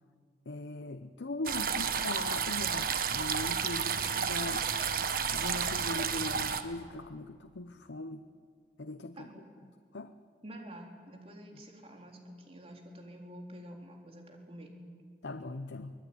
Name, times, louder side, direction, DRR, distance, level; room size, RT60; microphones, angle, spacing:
voice 1, 0.5-4.7 5.3-8.3 8.8-9.3 9.9-10.1 15.2-15.9, left 2 dB, 90° left, 9 dB, 0.8 m, -40 dB
sound 1, 1.5-6.6, right 6 dB, 55° right, 1.4 m, -31 dB
voice 2, 9.1-9.7 10.4-14.7, equal, 35° right, 1 dB, 3.8 m, -48 dB
24.5 x 19.5 x 9.7 m, 2.1 s
head